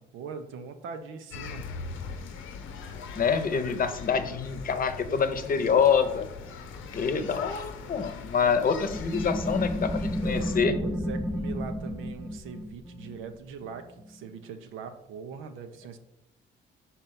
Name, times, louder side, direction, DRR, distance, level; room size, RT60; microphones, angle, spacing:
voice 1, 0.0-1.7 7.0-7.4 10.2-10.5 10.8-16.0, right 6 dB, 85° right, 7 dB, 0.8 m, -41 dB
sound 1, 1.3-10.6, left 5 dB, 80° left, 0.7 m, -41 dB
voice 2, 3.2-6.3 6.9-10.8, left 6 dB, 45° left, 9 dB, 0.8 m, -26 dB
sound 2, 8.8-14.2, equal, ahead, 0.6 m, -32 dB
5.1 x 4.1 x 5.9 m, 0.83 s
cardioid pair, 90°, 20 cm